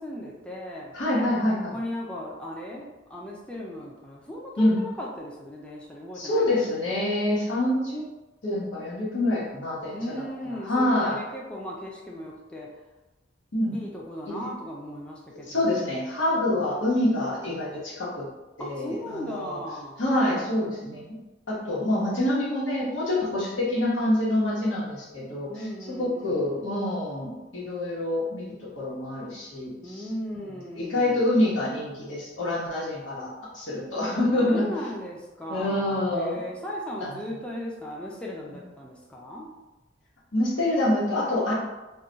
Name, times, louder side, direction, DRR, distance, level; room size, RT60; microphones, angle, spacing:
voice 1, 0.0-1.0 1.7-6.4 9.9-12.7 13.7-15.6 16.5-16.7 18.6-20.0 25.5-26.7 29.8-31.2 34.3-39.5, left 1 dB, 5° left, -4 dB, 0.4 m, -37 dB
voice 2, 0.9-1.8 4.6-4.8 6.1-8.1 8.4-10.2 10.5-11.2 13.5-13.8 14.3-14.4 15.4-18.3 18.6-19.6 20.0-21.2 21.5-28.5 28.7-30.1 30.8-34.6 35.5-36.4 37.0-37.2 40.3-41.5, left 1 dB, 85° left, -6 dB, 1.0 m, -26 dB
2.3 x 2.2 x 3.8 m, 1.1 s
head